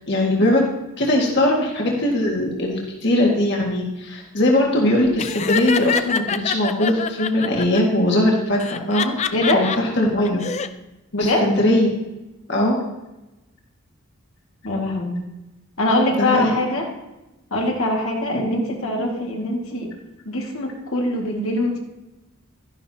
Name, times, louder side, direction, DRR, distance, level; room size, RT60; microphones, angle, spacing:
voice 1, 0.1-0.6 1.0-10.4 11.2-11.9 12.5-12.8 16.1-16.5, left 1 dB, 55° left, -2 dB, 1.8 m, -20 dB
Laughter, 5.2-7.8 8.6-9.8 10.2-10.7, left 6 dB, 30° left, 0.4 m, -25 dB
voice 2, 9.3-9.6 11.1-11.5 14.6-15.2 15.8-16.9 17.5-19.9 20.3-21.8, left 1 dB, 75° left, -1 dB, 2.0 m, -22 dB
12.5 x 11.0 x 2.9 m, 1.0 s
head